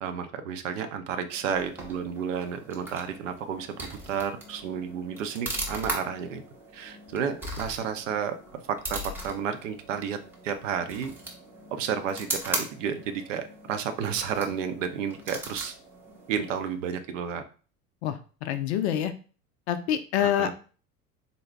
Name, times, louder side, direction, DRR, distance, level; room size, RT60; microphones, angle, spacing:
voice 1, 0.0-6.4 6.7-10.2 10.4-11.1 11.7-15.7 16.3-17.4 20.2-20.5, right 7 dB, 60° right, 8 dB, 0.6 m, -31 dB
sound 1, 1.3-16.8, right 1 dB, 5° right, 0.6 m, -39 dB
voice 2, 18.0-19.1 19.7-20.5, left 10 dB, 50° left, 10 dB, 0.5 m, -26 dB
3.9 x 2.0 x 3.3 m, 0.37 s
figure-of-eight pair, 75°, 45 cm